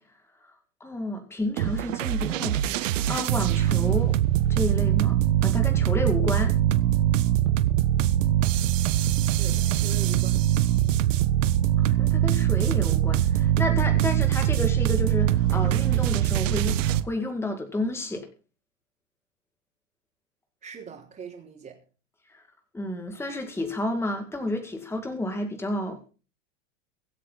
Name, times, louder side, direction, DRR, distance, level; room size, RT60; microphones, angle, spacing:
voice 1, 0.8-4.2 4.5-6.6 11.8-18.3 22.3-22.4 22.7-26.1, left 1 dB, 5° left, 2.3 m, -31 dB
sound 1, 1.6-17.0, right 12 dB, 80° right, 1.4 m, -23 dB
voice 2, 9.4-10.5 20.6-21.8, right 6 dB, 20° right, 4.3 m, -41 dB
24.0 x 8.3 x 4.1 m
supercardioid pair, 135°, 37 cm